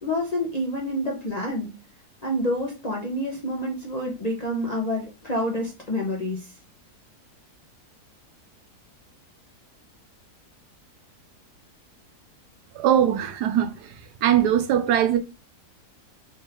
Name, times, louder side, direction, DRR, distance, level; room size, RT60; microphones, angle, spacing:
voice 1, 0.0-1.7 2.2-6.5, left 1 dB, 40° left, 0.6 m, -28 dB
voice 2, 12.7-13.9 14.2-15.2, right 10 dB, 80° right, 1.2 m, -21 dB
3.5 x 3.5 x 2.8 m
omnidirectional pair, 1.7 m